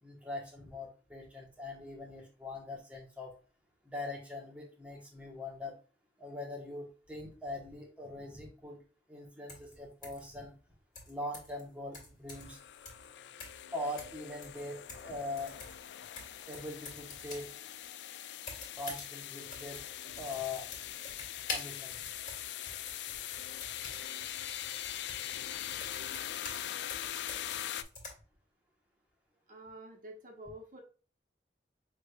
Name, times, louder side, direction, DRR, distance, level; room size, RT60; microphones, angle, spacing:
voice 1, 0.0-3.3 3.8-5.8 6.2-8.8 9.1-10.5 11.1-12.6 13.7-15.6 16.5-17.5 18.8-19.8 20.2-20.7 21.5-22.1, left 2 dB, 10° right, -1 dB, 1.2 m, -42 dB
sound 1, 9.5-9.7 10.0-10.3 11.0-11.6 11.9-12.6 12.9-13.1 13.4-13.7 14.0-15.1 15.4-17.5 18.4-19.1 19.4-26.6 26.9-28.1, left 3 dB, 45° left, 2.1 m, -46 dB
sound 2, 12.3-27.8, left 11 dB, 80° left, 0.3 m, -42 dB
voice 2, 29.5-30.8, right 1 dB, 50° right, 2 dB, 1.2 m, -48 dB
6.1 x 3.3 x 2.4 m, 0.37 s
head